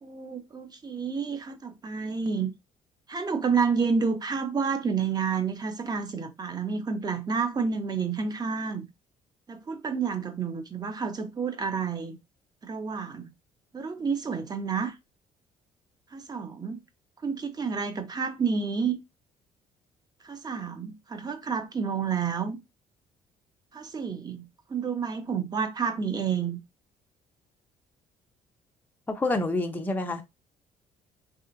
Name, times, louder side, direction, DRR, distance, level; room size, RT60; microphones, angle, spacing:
voice 1, 0.0-2.5 3.1-8.9 9.5-12.2 12.6-13.3 13.7-14.9 16.1-16.8 17.2-19.0 20.2-22.6 23.7-26.6, right 5 dB, 30° right, 0.6 m, -29 dB
voice 2, 29.1-30.2, left 2 dB, 10° left, 0.5 m, -27 dB
3.2 x 2.8 x 2.4 m
cardioid pair, 100°, 14 cm